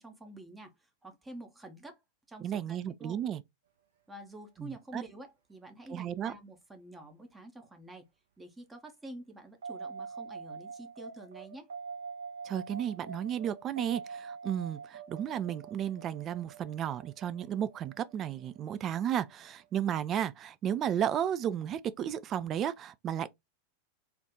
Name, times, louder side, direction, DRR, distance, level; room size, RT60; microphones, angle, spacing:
voice 1, 0.0-2.0 2.3-3.2 4.1-8.0 8.4-11.7, right 1 dB, 10° right, 0.7 m, -48 dB
voice 2, 2.4-3.4 4.6-5.0 5.9-6.3 12.4-23.3, right 9 dB, 30° right, 0.3 m, -33 dB
sound 1, 9.6-19.8, right 5 dB, 65° right, 0.9 m, -45 dB
3.5 x 2.4 x 2.9 m
figure-of-eight pair, 90°, 0 cm